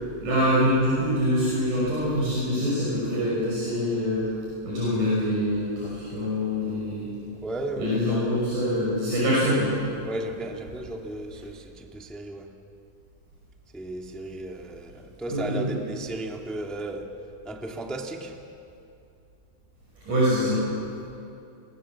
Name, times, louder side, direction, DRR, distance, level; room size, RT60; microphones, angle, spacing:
voice 1, 0.2-4.3 4.6-7.1 7.8-9.7 15.3-15.6 20.0-20.6, equal, 70° right, -7 dB, 7.5 m, -24 dB
voice 2, 7.3-8.4 10.0-12.5 13.7-17.1 17.4-18.4, right 1 dB, ahead, 2 dB, 0.7 m, -35 dB
29.0 x 21.5 x 7.4 m, 2.6 s
omnidirectional pair, 3.8 m